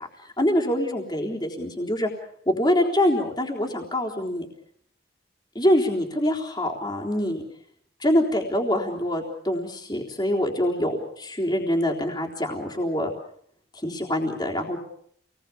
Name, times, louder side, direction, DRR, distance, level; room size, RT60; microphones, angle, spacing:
voice 1, 0.0-2.1 2.5-4.5 5.6-7.4 8.0-13.1 13.7-14.8, left 1 dB, 20° left, 0 dB, 3.8 m, -25 dB
28.0 x 19.5 x 7.2 m, 0.66 s
head